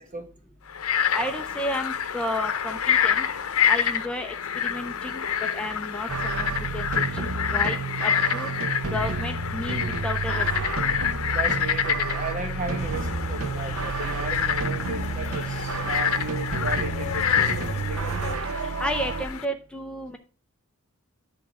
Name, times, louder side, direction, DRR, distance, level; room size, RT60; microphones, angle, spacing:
Frog, 0.7-19.4, left 8 dB, 85° left, 0.7 m, -28 dB
voice 1, 1.1-3.3 3.7-4.3 4.6-5.2 5.5-7.8 8.0-8.5 8.9-10.5 18.6-20.2, left 1 dB, 5° left, 0.6 m, -32 dB
sound 1, 6.1-19.3, right 4 dB, 85° right, 0.8 m, -30 dB
voice 2, 11.3-18.3, right 3 dB, 35° right, 1.1 m, -35 dB
sound 2, 12.8-18.4, left 2 dB, 35° left, 1.7 m, -37 dB
10.5 x 3.7 x 6.0 m
head